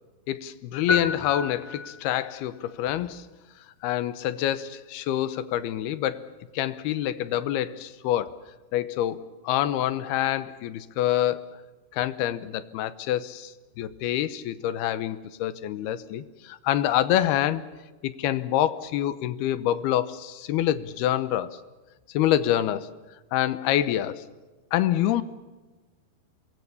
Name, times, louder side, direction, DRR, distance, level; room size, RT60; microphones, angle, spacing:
voice 1, 0.3-3.3 3.8-6.3 6.5-8.4 8.7-11.4 11.9-13.5 13.8-17.6 18.0-21.6 22.1-22.9 23.3-24.2 24.7-25.2, left 12 dB, 75° left, 14 dB, 2.8 m, -26 dB
sound 1, 0.9-2.3, left 4 dB, 30° left, 6.2 m, -30 dB
26.5 x 22.0 x 7.1 m, 1.2 s
omnidirectional pair, 4.9 m